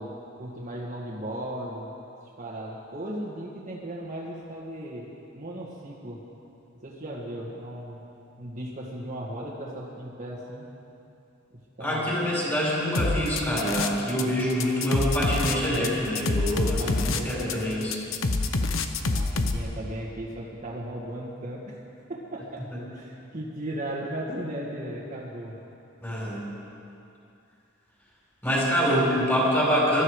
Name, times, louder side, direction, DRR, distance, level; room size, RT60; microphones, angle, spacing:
voice 1, 0.0-1.9 2.4-5.1 5.4-6.2 6.8-8.0 8.4-10.7 11.5-12.1 16.8-17.6 19.1-21.8 22.1-22.6 22.9-25.6, right 1 dB, 40° right, -7 dB, 1.9 m, -36 dB
voice 2, 11.8-18.0 26.0-26.4 28.4-30.0, equal, 10° left, -5 dB, 5.1 m, -25 dB
sound 1, 12.9-14.2 14.5-19.6, left 3 dB, 85° left, 1.0 m, -26 dB
21.5 x 13.5 x 4.9 m, 2.7 s
head